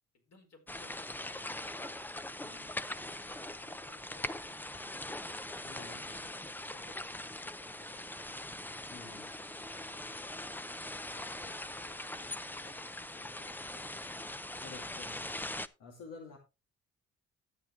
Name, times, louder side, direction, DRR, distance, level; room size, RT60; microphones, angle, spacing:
voice 1, 0.1-2.0 2.5-5.3 5.7-10.6 10.9-14.2 14.8-15.4, left 4 dB, 55° left, 3 dB, 4.6 m, -60 dB
sound 1, 0.7-15.7, left 1 dB, 5° left, 0.5 m, -42 dB
voice 2, 5.6-6.0 8.9-9.3 14.6-15.2 15.6-16.4, left 4 dB, 85° left, 1 dB, 2.4 m, -50 dB
12.0 x 8.8 x 3.1 m, 0.27 s
cardioid pair, 90°, 30 cm